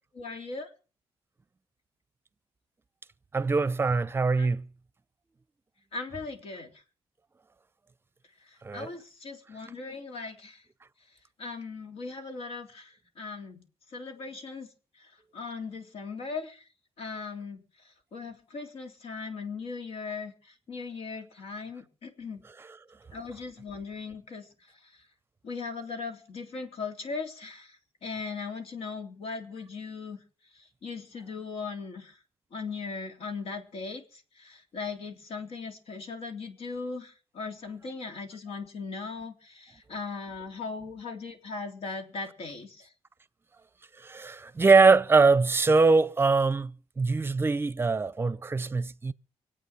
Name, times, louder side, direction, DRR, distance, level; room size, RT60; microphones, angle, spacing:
voice 1, 0.1-0.7 4.4-4.5 5.9-6.7 8.7-10.6 11.4-13.6 13.9-14.7 15.0-16.6 17.0-17.6 18.1-22.4 23.1-24.4 25.4-27.8 28.0-30.2 30.8-32.2 32.5-42.9, left 4 dB, 70° left, 3.4 m, -38 dB
voice 2, 3.3-4.7 8.6-8.9 22.6-22.8 44.0-49.1, right 4 dB, 20° right, 0.7 m, -23 dB
24.5 x 8.8 x 5.8 m
cardioid pair, 120°, 11 cm